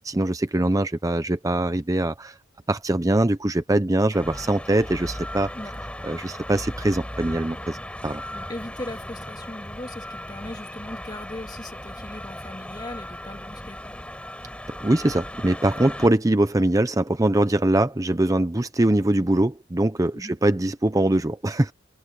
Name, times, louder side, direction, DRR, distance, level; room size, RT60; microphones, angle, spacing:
voice 1, 0.0-2.4 2.7-5.5 6.0-7.8 8.0-8.2 14.7-21.7, right 1 dB, 20° right, 0.6 m, -22 dB
sound 1, 4.1-16.1, left 1 dB, 5° left, 5.5 m, -37 dB
voice 2, 5.5-5.9 8.3-14.0 20.1-20.3, left 1 dB, 25° left, 2.2 m, -38 dB
head